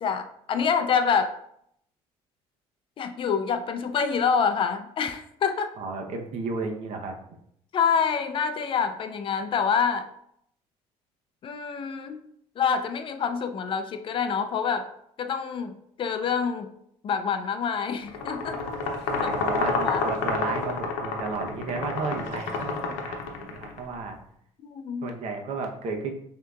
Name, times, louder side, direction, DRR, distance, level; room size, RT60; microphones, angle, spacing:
voice 1, 0.0-1.4 3.0-5.7 7.7-10.1 11.4-12.2 12.6-14.9 15.2-15.7 16.0-16.7 17.0-18.6 19.6-20.0 24.6-25.1, left 6 dB, 45° left, 8 dB, 0.4 m, -26 dB
voice 2, 5.8-7.2 19.1-24.2 25.0-26.1, right 4 dB, 65° right, 2 dB, 0.8 m, -33 dB
sound 1, 18.1-23.8, left 4 dB, 90° left, 0.7 m, -29 dB
6.2 x 2.8 x 2.3 m, 0.70 s
cardioid pair, 100°, 12 cm